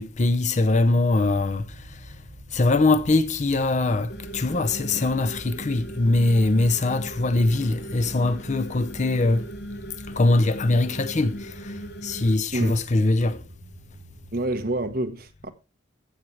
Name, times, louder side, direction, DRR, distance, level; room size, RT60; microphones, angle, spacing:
voice 1, 0.0-1.7 2.5-9.5 10.2-11.7 12.0-13.4, left 2 dB, 40° left, 0.6 m, -22 dB
sound 1, 1.2-15.0, equal, 85° right, 1.8 m, -45 dB
sound 2, 4.1-12.3, right 1 dB, 55° left, 1.2 m, -39 dB
voice 2, 14.3-15.5, right 1 dB, 50° right, 1.1 m, -28 dB
14.5 x 6.8 x 3.2 m
head